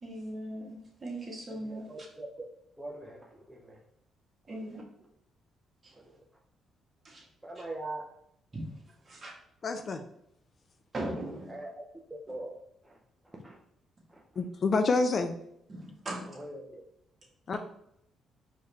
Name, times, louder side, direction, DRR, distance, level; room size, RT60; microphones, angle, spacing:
voice 1, 0.0-1.9 4.5-4.8 5.8-5.9 7.0-7.3 8.5-9.3 10.9-11.5 15.7-16.4, right 1 dB, 35° right, -2 dB, 1.5 m, -39 dB
voice 2, 1.5-2.3 2.8-3.8 4.4-4.8 5.9-6.2 7.4-8.1 11.5-11.8 12.1-12.6 12.8-13.0 13.2-13.6 14.1-14.2 16.2-16.8, right 2 dB, 10° right, -2 dB, 0.7 m, -43 dB
voice 3, 9.6-10.0 14.4-15.4 17.5-17.6, left 3 dB, 45° left, 7 dB, 0.4 m, -27 dB
4.5 x 3.2 x 3.3 m, 0.73 s
cardioid pair, 90°, 0 cm